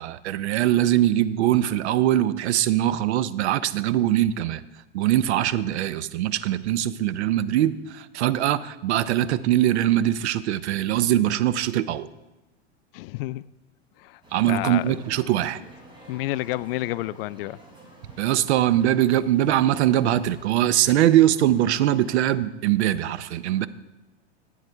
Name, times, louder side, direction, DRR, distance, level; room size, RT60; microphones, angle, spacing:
voice 1, 0.0-4.6 4.9-12.1 14.3-15.6 18.2-23.7, right 12 dB, 75° right, 0.7 m, -22 dB
voice 2, 12.9-13.5 14.0-15.0 15.6-15.7 16.1-17.6, left 18 dB, 60° left, 0.4 m, -30 dB
sound 1, 14.2-22.3, right 1 dB, 15° right, 3.3 m, -49 dB
12.0 x 8.3 x 4.5 m
hypercardioid pair, 120°, 34 cm